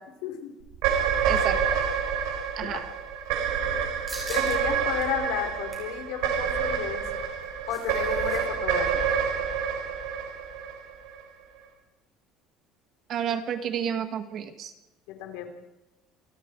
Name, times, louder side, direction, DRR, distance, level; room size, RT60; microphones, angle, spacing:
voice 1, 0.2-0.5 2.6-2.8 4.3-7.0 7.7-9.2 15.1-15.5, left 9 dB, 75° left, 4 dB, 4.6 m, -32 dB
sound 1, 0.7-11.2, right 7 dB, 75° right, 6.5 m, -28 dB
voice 2, 1.3-1.8 2.6-2.8 13.1-14.7, right 8 dB, 40° right, 7 dB, 1.9 m, -31 dB
sound 2, 4.1-4.6 5.0-5.1 5.5-5.9 7.2-8.4 8.7-8.8 9.1-9.4, right 1 dB, 10° right, 6.9 m, -42 dB
27.5 x 25.5 x 4.8 m, 1.0 s
cardioid pair, 170°, 0 cm